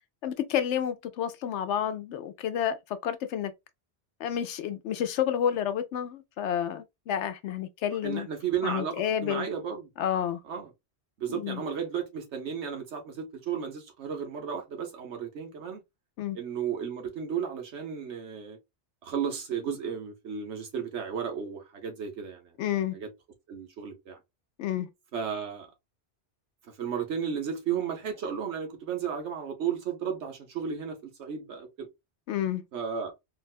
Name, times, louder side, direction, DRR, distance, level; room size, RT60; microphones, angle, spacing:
voice 1, 0.2-2.8 3.0-3.5 4.2-8.3 8.6-9.5 10.0-10.4 11.3-11.6 16.2-16.4 22.6-23.0 24.6-24.9 32.3-32.6, left 9 dB, 85° left, 0.9 m, -30 dB
voice 2, 8.0-9.9 10.4-10.7 11.2-15.8 16.3-18.6 19.0-22.5 22.9-23.1 23.5-24.2 25.1-25.7 26.7-31.9 32.7-33.1, right 7 dB, 80° right, 1.3 m, -34 dB
4.1 x 2.2 x 2.3 m
omnidirectional pair, 1.2 m